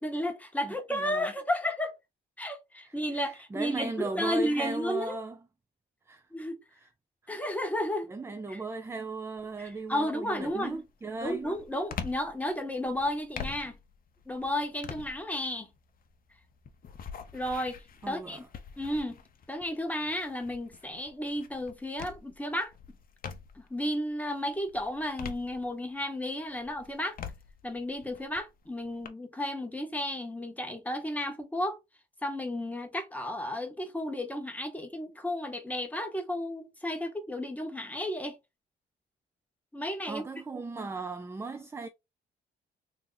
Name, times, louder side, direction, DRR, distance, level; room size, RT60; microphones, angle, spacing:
voice 1, 0.0-1.9 2.4-5.2 6.3-6.6 7.3-8.1 8.5-8.6 9.6-10.7 11.2-13.8 14.3-15.7 17.3-18.4 18.8-19.2 19.5-22.7 23.5-27.2 27.6-31.8 32.2-38.4 39.7-40.2, left 1 dB, 5° left, 0.9 m, -33 dB
voice 2, 0.6-1.3 2.8-5.4 6.1-6.3 6.8-6.9 7.2-7.3 8.1-11.6 18.0-18.5 40.0-41.9, right 3 dB, 15° right, 0.3 m, -37 dB
sound 1, 9.4-9.8 10.3-23.8 24.2-26.1 26.5-29.1, left 6 dB, 45° left, 0.6 m, -45 dB
2.8 x 2.6 x 3.8 m
cardioid pair, 90°, 20 cm